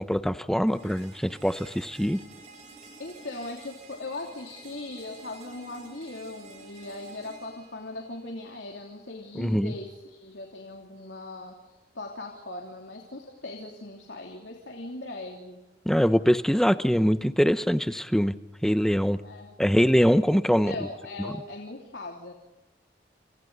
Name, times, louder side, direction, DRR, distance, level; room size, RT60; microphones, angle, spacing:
voice 1, 0.0-2.2 9.4-9.7 15.9-18.3 18.6-19.2 19.6-20.7, equal, 5° left, 12 dB, 0.7 m, -23 dB
sound 1, 0.7-8.7, right 3 dB, 40° right, 7.9 m, -50 dB
voice 2, 2.7-15.6 19.2-19.6 20.6-22.3, left 2 dB, 90° left, 1 dB, 3.0 m, -39 dB
28.5 x 28.5 x 4.1 m, 1.1 s
head